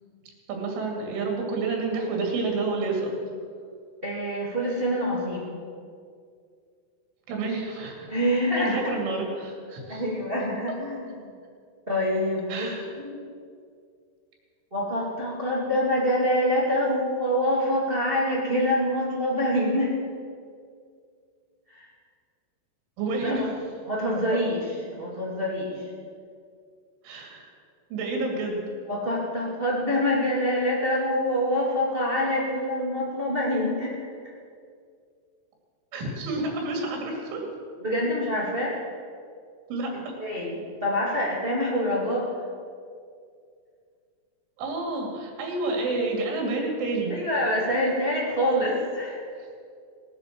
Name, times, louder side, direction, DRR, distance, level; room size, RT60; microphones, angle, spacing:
voice 1, 0.5-3.2 7.3-8.2 8.6-10.0 12.5-12.9 23.0-23.5 27.0-27.5 27.9-28.6 35.9-37.5 39.7-40.2 44.6-47.2, right 3 dB, 80° right, 1 dB, 5.2 m, -29 dB
voice 2, 4.0-5.6 8.1-8.9 9.9-11.1 11.9-12.7 13.0-13.2 14.7-20.0 21.7-21.8 23.2-23.5 23.9-24.6 24.9-25.9 28.9-34.0 37.8-38.7 40.2-42.4 47.1-49.2, equal, 35° right, -4 dB, 0.8 m, -26 dB
19.5 x 8.8 x 7.6 m, 2.2 s
omnidirectional pair, 5.5 m